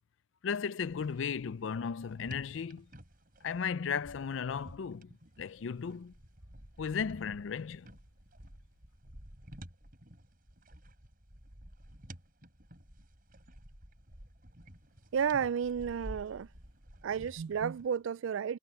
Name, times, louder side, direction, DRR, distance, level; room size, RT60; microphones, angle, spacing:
voice 1, 0.4-2.9 3.4-5.1 5.4-6.1 6.8-7.9, left 6 dB, 70° left, 0.4 m, -35 dB
sound 1, 0.8-17.9, equal, 45° right, 4.7 m, -52 dB
voice 2, 15.1-16.5 17.0-18.6, right 7 dB, 75° right, 0.4 m, -32 dB
head